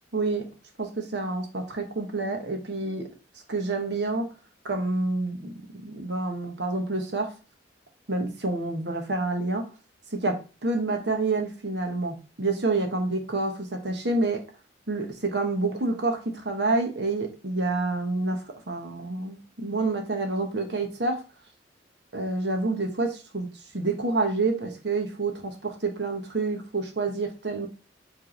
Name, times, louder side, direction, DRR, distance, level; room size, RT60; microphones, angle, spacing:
voice 1, 0.1-3.1 3.5-4.3 4.6-5.5 5.8-7.4 8.1-9.7 10.1-14.5 14.9-21.2 22.1-27.7, right 3 dB, 65° right, 1.1 m, -28 dB
4.9 x 3.5 x 3.1 m
head